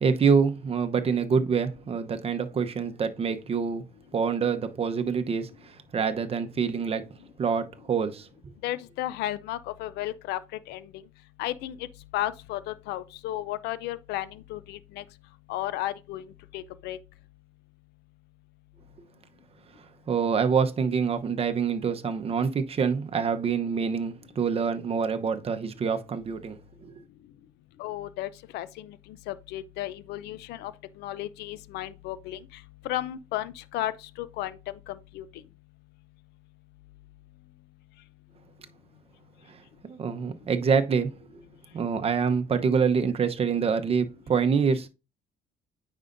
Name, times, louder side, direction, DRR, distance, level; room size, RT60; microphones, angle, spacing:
voice 1, 0.0-3.8 4.1-7.1 7.4-8.3 20.1-26.9 39.5-39.6 39.8-41.4 41.7-44.9, right 6 dB, 35° right, 0.9 m, -26 dB
voice 2, 8.6-10.4 10.7-10.9 11.4-11.8 12.1-15.0 15.5-16.3 16.5-17.0 27.8-29.0 29.3-30.7 31.0-32.4 32.8-33.9 34.2-35.2, left 14 dB, 85° left, 0.5 m, -33 dB
9.1 x 5.3 x 2.6 m
cardioid pair, 110°, 17 cm